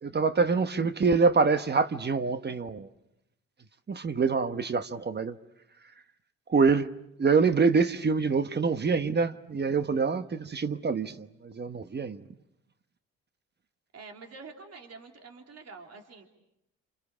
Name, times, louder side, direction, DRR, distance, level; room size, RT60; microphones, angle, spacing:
voice 1, 0.0-2.9 3.9-5.4 6.5-6.9 7.2-12.3, right 4 dB, 35° right, 1.1 m, -25 dB
voice 2, 13.9-16.2, right 4 dB, 55° right, 3.4 m, -47 dB
28.5 x 28.5 x 7.2 m
cardioid pair, 90°, 30 cm